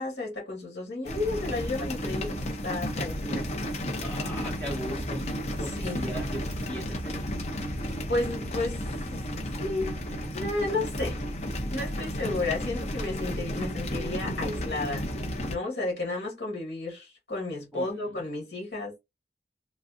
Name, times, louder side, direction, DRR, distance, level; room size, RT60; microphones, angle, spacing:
voice 1, 0.0-3.5 5.8-6.0 8.1-8.8 9.1-9.2 9.6-10.0 10.3-11.2 11.7-15.1 15.5-18.9, left 2 dB, 75° left, 1.8 m, -32 dB
sound 1, 1.0-15.5, equal, 40° left, 0.6 m, -33 dB
voice 2, 4.0-5.3 5.6-7.2 17.7-18.2, equal, 5° left, 1.0 m, -39 dB
3.2 x 2.4 x 2.5 m
head